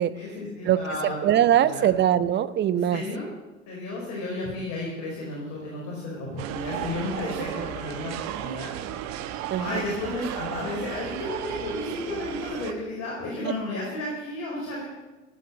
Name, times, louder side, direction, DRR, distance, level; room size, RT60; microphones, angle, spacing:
voice 1, 0.1-1.1 1.6-1.9 2.9-3.3 3.7-8.7 9.0-14.8, left 2 dB, 45° left, -3 dB, 4.9 m, -33 dB
voice 2, 0.6-3.0 7.6-7.7 9.5-9.8, right 11 dB, 30° right, 14 dB, 0.9 m, -22 dB
sound 1, 6.4-12.7, right 10 dB, 45° right, 1.3 m, -34 dB
15.0 x 8.2 x 9.5 m, 1.1 s
figure-of-eight pair, 75°, 38 cm